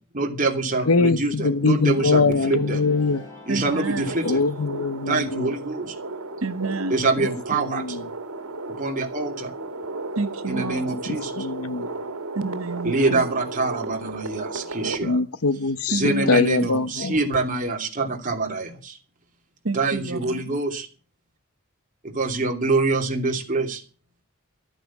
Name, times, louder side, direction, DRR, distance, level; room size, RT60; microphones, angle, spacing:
voice 1, 0.1-2.8 3.5-4.4 5.1-5.9 6.9-8.0 8.8-9.5 10.5-11.3 12.8-15.2 15.9-19.0 19.7-20.9 22.0-23.8, right 3 dB, 40° right, 2.9 m, -25 dB
voice 2, 0.9-3.2 4.2-5.5 7.2-8.0 11.1-11.9 15.0-17.2, left 3 dB, 80° left, 0.9 m, -23 dB
sound 1, 1.5-4.5, left 2 dB, 15° left, 5.3 m, -41 dB
voice 3, 3.5-4.3 6.4-7.0 10.2-10.8 12.3-13.3 15.9-16.3 19.6-20.5, right 3 dB, 70° right, 1.1 m, -29 dB
sound 2, 3.7-15.0, right 2 dB, 85° right, 2.1 m, -34 dB
14.0 x 9.0 x 7.2 m
head